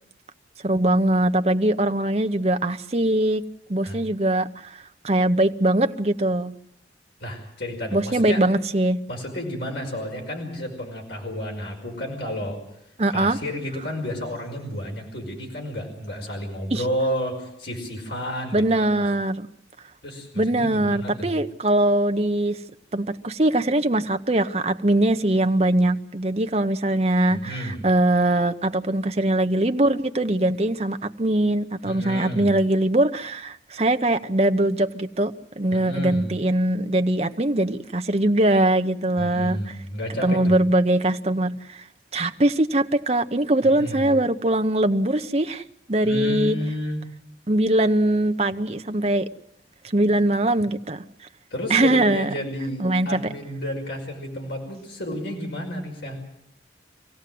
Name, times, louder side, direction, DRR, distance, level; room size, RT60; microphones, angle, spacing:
voice 1, 0.6-3.4 3.7-6.5 7.9-9.0 13.0-13.4 16.7-16.8 18.5-19.5 20.4-22.6 22.9-39.7 40.2-41.9 42.1-46.6 47.5-49.3 49.8-51.0 51.7-52.3 52.8-53.3, right 1 dB, 35° right, 8 dB, 0.9 m, -22 dB
voice 2, 7.2-8.4 9.1-12.6 13.1-18.6 18.9-19.0 20.0-21.3 27.3-27.8 31.8-32.5 35.7-36.3 39.2-40.6 43.6-44.1 46.0-47.0 51.5-56.2, equal, 70° left, 0 dB, 5.4 m, -31 dB
25.5 x 17.0 x 7.7 m, 0.78 s
head